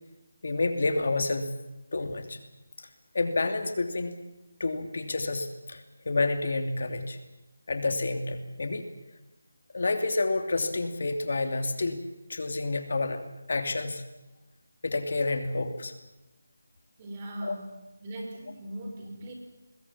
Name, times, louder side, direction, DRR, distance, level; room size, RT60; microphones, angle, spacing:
voice 1, 0.4-1.5 1.9-2.4 3.1-4.2 4.6-7.2 7.7-8.8 9.7-12.0 12.3-13.2 13.5-14.0 14.8-15.9 17.4-17.6, left 3 dB, 55° left, 7 dB, 2.8 m, -29 dB
voice 2, 17.0-19.3, right 1 dB, 20° right, 3 dB, 4.5 m, -39 dB
24.5 x 21.0 x 7.4 m, 0.97 s
figure-of-eight pair, 170°, 0 cm